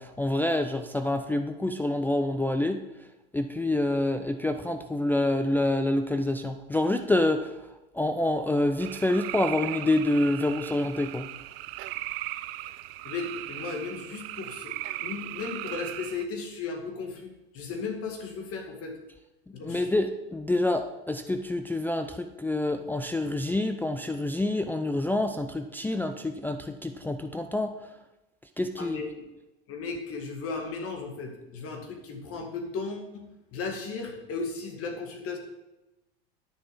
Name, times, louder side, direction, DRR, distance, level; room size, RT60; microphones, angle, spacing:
voice 1, 0.0-2.8 3.3-7.5 7.9-11.3 19.6-27.7 28.6-29.0, left 1 dB, 5° left, 6 dB, 0.4 m, -27 dB
sound 1, 8.8-16.3, right 16 dB, 65° right, 0.6 m, -38 dB
voice 2, 13.0-18.9 19.5-19.9 28.8-29.3 29.7-33.3 33.5-35.4, left 4 dB, 45° left, 3 dB, 2.3 m, -36 dB
9.6 x 6.6 x 5.2 m, 1.0 s
hypercardioid pair, 95°, 32 cm